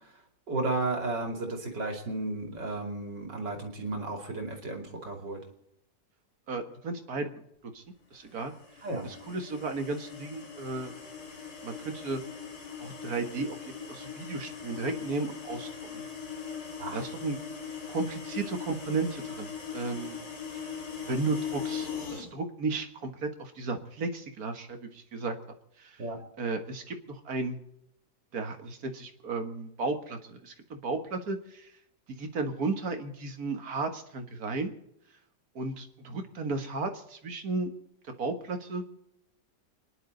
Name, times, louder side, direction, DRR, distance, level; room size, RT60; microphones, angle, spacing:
voice 1, 0.5-5.4 8.8-9.1 16.8-17.0 26.0-26.2, right 2 dB, 90° right, 4 dB, 3.3 m, -33 dB
voice 2, 6.5-7.3 7.6-7.8 8.1-8.5 9.0-10.9 11.6-12.2 12.8-16.1 16.9-17.4 17.9-20.2 20.5-20.8 21.1-25.4 25.8-26.0 26.4-27.6 28.3-31.7 32.1-34.7 35.6-37.7 38.2-38.8, right 3 dB, 60° right, 6 dB, 2.0 m, -34 dB
sound 1, 8.4-22.3, left 7 dB, 60° left, 2.7 m, -40 dB
29.5 x 10.5 x 3.9 m, 0.82 s
omnidirectional pair, 1.8 m